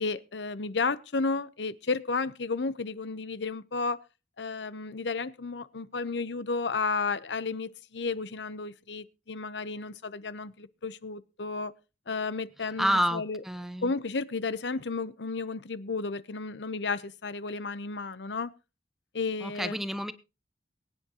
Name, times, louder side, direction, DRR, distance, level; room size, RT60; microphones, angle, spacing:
voice 1, 0.0-4.0 4.4-11.7 12.1-13.4 13.8-18.5 19.1-19.8, left 4 dB, 90° left, 0.8 m, -32 dB
voice 2, 12.8-13.9 19.4-20.1, equal, ahead, 1.0 m, -29 dB
23.0 x 9.4 x 2.9 m
head